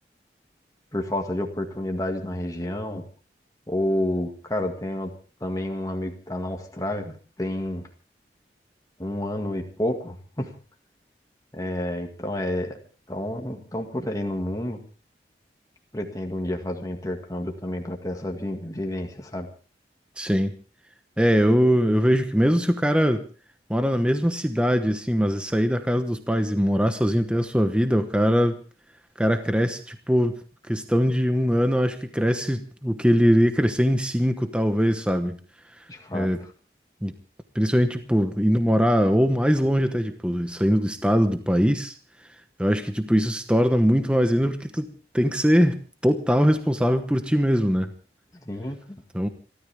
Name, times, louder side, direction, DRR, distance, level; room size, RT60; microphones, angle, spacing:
voice 1, 0.9-3.0 3.7-5.1 5.4-7.9 9.0-10.5 11.5-12.8 13.1-14.8 15.9-19.5 35.9-36.5 48.3-49.0, left 1 dB, 20° left, 2.0 m, -30 dB
voice 2, 20.2-20.5 21.2-23.2 23.7-28.6 29.2-30.4 30.7-35.4 36.1-36.4 37.0-37.1 37.5-42.0 42.6-47.9 49.1-49.3, equal, 5° right, 1.0 m, -22 dB
27.5 x 13.5 x 3.5 m
head